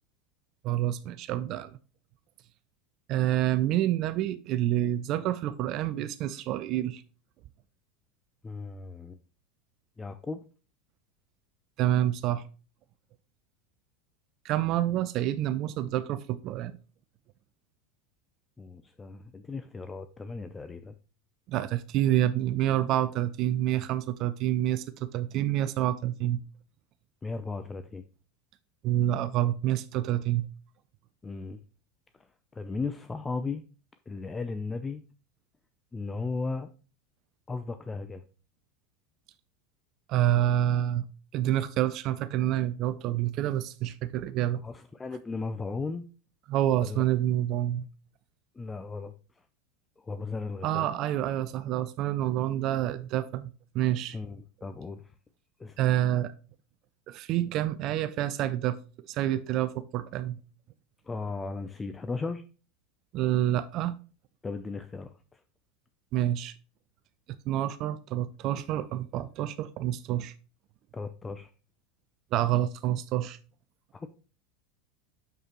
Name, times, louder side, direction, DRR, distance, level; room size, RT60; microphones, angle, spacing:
voice 1, 0.6-1.7 3.1-7.0 11.8-12.4 14.4-16.7 21.5-26.4 28.8-30.5 40.1-41.0 41.3-44.6 46.5-47.9 50.6-53.5 53.7-54.2 55.8-56.3 57.1-58.8 59.1-60.4 63.1-63.9 66.1-66.5 67.5-70.3 72.3-73.4, right 12 dB, 50° right, 0.4 m, -28 dB
voice 2, 8.4-9.2 10.0-10.4 18.6-20.9 27.2-28.0 31.2-31.6 32.5-33.6 34.1-35.0 35.9-36.7 37.5-38.2 44.6-46.1 46.8-47.0 48.6-49.1 50.0-50.9 54.1-55.1 55.6-55.8 61.1-62.4 64.4-65.4 70.9-71.5 73.9-74.1, left 4 dB, 20° left, 0.4 m, -36 dB
6.8 x 6.4 x 2.9 m
hypercardioid pair, 85°, 0 cm